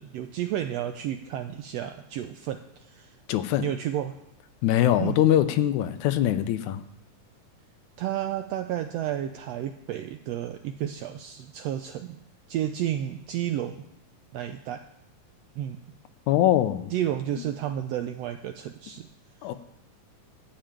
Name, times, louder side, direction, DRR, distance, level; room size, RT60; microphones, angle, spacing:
voice 1, 0.0-3.2 3.6-4.2 5.0-5.2 8.0-12.2 12.5-13.8 14.3-14.8 15.6-15.8 16.9-19.1 19.4-19.5, right 11 dB, 85° right, 8 dB, 1.5 m, -31 dB
voice 2, 3.3-3.6 4.6-6.8 16.3-16.9 19.4-19.5, left 12 dB, 80° left, 11 dB, 2.0 m, -22 dB
12.5 x 5.7 x 8.8 m, 0.85 s
omnidirectional pair, 3.5 m